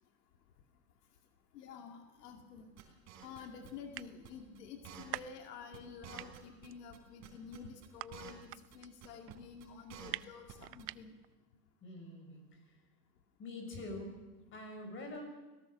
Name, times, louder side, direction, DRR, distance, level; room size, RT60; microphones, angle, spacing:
voice 1, 1.5-2.7 3.2-11.1, left 6 dB, 80° left, 4 dB, 2.4 m, -50 dB
sound 1, 2.4-2.5 3.2-3.3 3.5-3.6 3.8-4.4 4.8-5.9 6.2-11.3, right 18 dB, 80° right, 0.7 m, -45 dB
sound 2, 2.8-3.7 4.0-4.3 4.5-4.6 4.8-5.5 5.7-5.8 6.0-7.0 7.2-8.5 8.7-8.8 9.0-9.3 9.6-10.5 10.8-10.9, right 10 dB, 35° right, 4.2 m, -51 dB
voice 2, 11.8-12.8 13.4-14.2 14.5-15.2, left 1 dB, 25° left, 4 dB, 6.0 m, -45 dB
24.0 x 18.0 x 6.6 m, 1.1 s
supercardioid pair, 135°, 47 cm